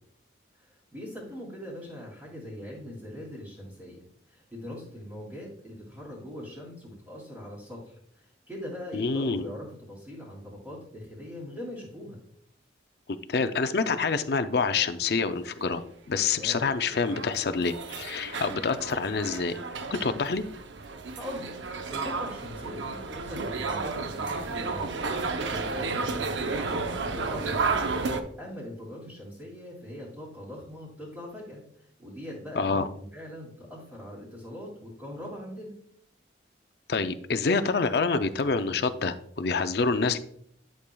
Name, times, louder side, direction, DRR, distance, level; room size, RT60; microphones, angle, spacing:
voice 1, 0.6-12.2 16.4-16.7 21.1-21.5 21.9-26.2 26.5-27.9 28.4-35.7 40.0-40.2, left 1 dB, 10° right, -8 dB, 2.7 m, -41 dB
voice 2, 8.9-9.4 13.3-19.5 19.9-20.4 32.5-32.9 36.9-40.2, left 4 dB, 60° left, 9 dB, 0.5 m, -27 dB
sound 1, 16.3-28.2, right 4 dB, 85° right, 0.7 m, -32 dB
11.5 x 6.5 x 2.3 m, 0.65 s
head